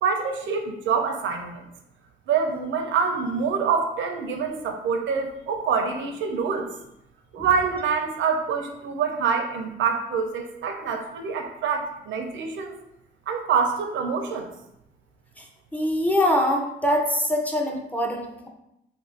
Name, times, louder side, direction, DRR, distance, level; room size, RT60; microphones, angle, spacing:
voice 1, 0.0-1.7 2.3-6.7 7.3-12.7 13.3-14.5, right 5 dB, 75° right, 5 dB, 0.6 m, -26 dB
voice 2, 15.4-18.5, left 1 dB, 10° left, 1 dB, 0.6 m, -24 dB
2.7 x 2.5 x 3.7 m, 0.83 s
cardioid pair, 90°, 20 cm